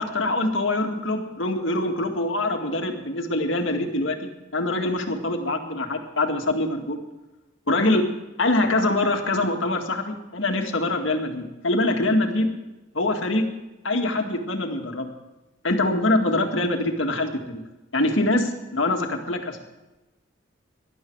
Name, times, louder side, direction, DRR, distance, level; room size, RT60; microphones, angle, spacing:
voice 1, 0.0-7.0 7.7-8.0 8.4-12.5 12.9-13.5 13.8-15.1 15.6-17.6 17.9-19.6, left 2 dB, 75° left, 3 dB, 2.0 m, -24 dB
19.0 x 12.0 x 4.7 m, 1.0 s
head